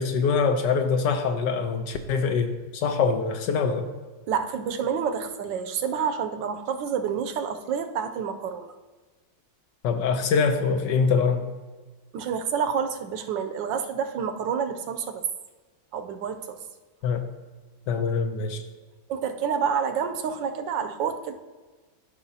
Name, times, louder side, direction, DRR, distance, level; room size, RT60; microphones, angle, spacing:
voice 1, 0.0-3.9 9.8-11.5 17.0-17.3 17.9-18.6, left 5 dB, 75° left, 7 dB, 1.2 m, -24 dB
voice 2, 4.3-8.7 12.1-15.2 15.9-16.6 19.1-21.3, right 7 dB, 75° right, 7 dB, 1.2 m, -28 dB
13.5 x 5.4 x 2.7 m, 1.3 s
omnidirectional pair, 2.1 m